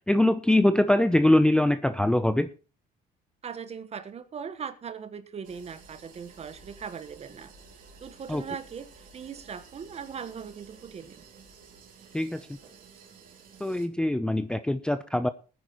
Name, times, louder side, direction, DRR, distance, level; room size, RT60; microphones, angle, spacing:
voice 1, 0.1-2.5 8.3-8.4 12.1-12.4 13.6-15.3, left 1 dB, 5° left, 10 dB, 0.5 m, -23 dB
voice 2, 3.4-7.5 8.0-11.3, right 7 dB, 40° right, 12 dB, 1.2 m, -39 dB
sound 1, 5.4-13.9, right 5 dB, 55° right, 2.7 m, -52 dB
20.5 x 9.5 x 3.0 m, 0.35 s
cardioid pair, 110°, 17 cm